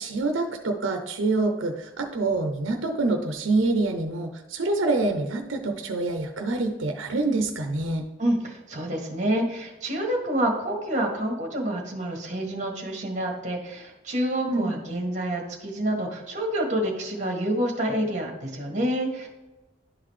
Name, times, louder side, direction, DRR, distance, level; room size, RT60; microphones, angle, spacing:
voice 1, 0.0-8.0 14.5-14.7, right 2 dB, 85° right, 4 dB, 0.7 m, -26 dB
voice 2, 8.2-19.3, right 1 dB, 40° right, 1 dB, 1.6 m, -28 dB
11.5 x 3.9 x 3.2 m, 1.1 s
head